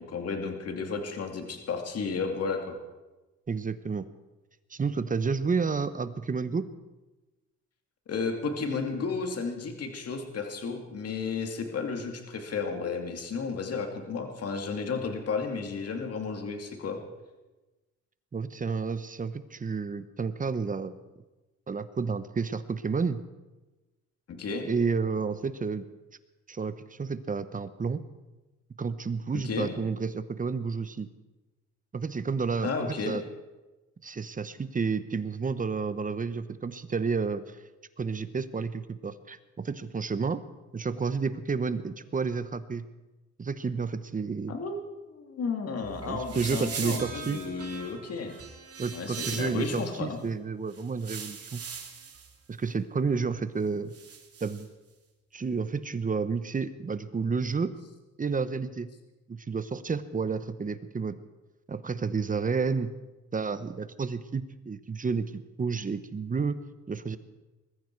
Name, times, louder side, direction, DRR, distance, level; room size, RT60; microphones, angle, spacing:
voice 1, 0.0-2.8 8.1-17.0 24.3-24.7 29.3-29.8 32.6-33.2 44.5-44.8 45.1-48.3 48.9-50.2, left 4 dB, 55° left, 4 dB, 2.6 m, -33 dB
voice 2, 3.5-4.1 4.7-6.7 18.3-21.1 21.7-23.2 24.6-25.9 26.5-28.0 28.8-31.1 31.9-32.7 33.1-33.2 34.0-37.6 38.0-40.4 40.7-42.9 43.4-44.5 46.0-47.4 48.8-51.6 52.5-53.9 54.4-54.7 55.3-57.7 58.2-58.9 59.3-61.2 61.7-62.9 63.3-66.6 66.9-67.2, right 5 dB, 25° right, 13 dB, 0.9 m, -30 dB
sound 1, 45.8-49.9 50.7-52.3 53.9-54.6, right 6 dB, 50° right, 2.6 m, -40 dB
20.5 x 14.5 x 4.7 m, 1.1 s
cardioid pair, 90°, 30 cm